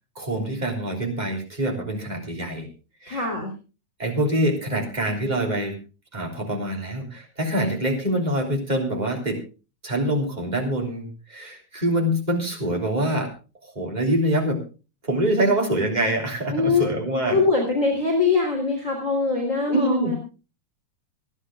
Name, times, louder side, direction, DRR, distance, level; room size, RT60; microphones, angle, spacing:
voice 1, 0.1-2.7 3.0-3.3 4.0-5.8 6.1-9.4 9.8-13.3 13.6-14.6 15.0-17.4 19.7-20.1, right 1 dB, 15° right, 2 dB, 3.2 m, -25 dB
voice 2, 3.1-3.5 16.5-16.9 17.3-20.2, left 4 dB, 25° left, 0 dB, 3.9 m, -22 dB
25.5 x 11.0 x 2.4 m, 0.33 s
omnidirectional pair, 3.4 m